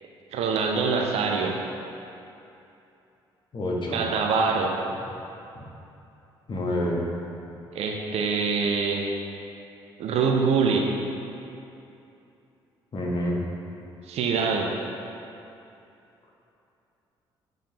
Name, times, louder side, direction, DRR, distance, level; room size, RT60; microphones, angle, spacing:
voice 1, 0.3-1.6 3.9-4.8 7.7-9.0 10.0-10.9 14.1-14.7, right 5 dB, 55° right, 1 dB, 0.6 m, -24 dB
voice 2, 3.5-4.0 5.5-5.6 6.5-7.0 12.9-13.4, left 1 dB, 40° left, -3 dB, 1.3 m, -27 dB
7.7 x 5.0 x 2.8 m, 2.8 s
figure-of-eight pair, 45°, 13 cm